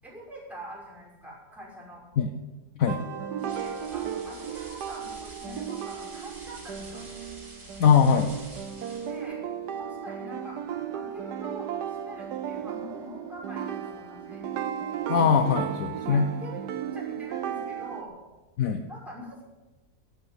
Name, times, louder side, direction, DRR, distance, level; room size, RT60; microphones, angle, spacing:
voice 1, 0.0-2.0 3.4-7.0 9.0-9.4 10.0-14.4 16.0-16.6 16.9-18.1 18.9-19.4, equal, ahead, -5 dB, 5.5 m, -44 dB
sound 1, 2.9-18.0, right 8 dB, 90° right, 1.5 m, -35 dB
sound 2, 3.4-9.3, right 2 dB, 50° right, 3.8 m, -47 dB
voice 2, 7.8-8.3 15.1-16.3 18.6-18.8, left 6 dB, 60° left, 7 dB, 1.2 m, -21 dB
12.0 x 9.0 x 9.8 m, 1.1 s
omnidirectional pair, 1.7 m